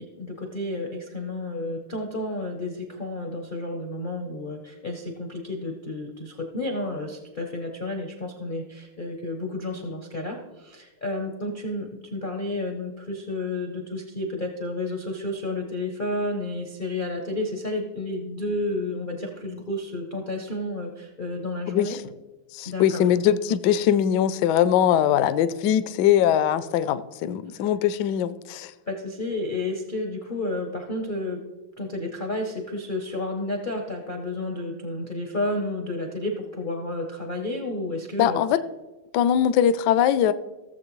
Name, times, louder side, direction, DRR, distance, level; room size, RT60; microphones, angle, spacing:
voice 1, 0.0-22.0 22.7-23.0 27.5-27.6 28.9-31.4 31.8-38.4, left 2 dB, 60° left, 0.5 m, -31 dB
voice 2, 21.7-22.0 22.5-28.7 38.2-38.6 39.1-40.3, left 10 dB, 75° left, 1.0 m, -21 dB
16.5 x 7.2 x 3.1 m
omnidirectional pair, 2.3 m